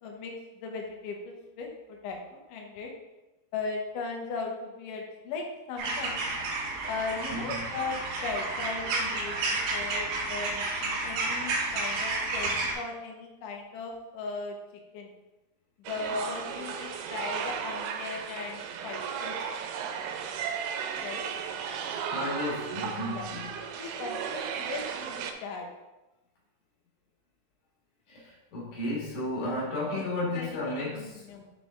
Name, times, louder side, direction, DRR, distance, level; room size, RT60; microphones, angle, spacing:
voice 1, 0.0-2.9 3.5-6.2 6.9-14.6 14.9-15.1 15.8-19.4 21.0-21.2 23.1-23.3 23.8-25.7 29.4-29.6 29.9-30.0 30.4-31.5, left 4 dB, 90° left, 1 dB, 1.8 m, -38 dB
sound 1, 5.8-12.7, right 3 dB, 70° right, 2.4 m, -31 dB
voice 2, 7.3-7.7 16.0-16.1 22.1-23.6 28.1-31.4, left 1 dB, 55° left, -4 dB, 2.8 m, -33 dB
sound 2, 15.9-25.3, right 7 dB, 90° right, 2.9 m, -35 dB
6.5 x 5.2 x 3.6 m, 1.0 s
omnidirectional pair, 4.9 m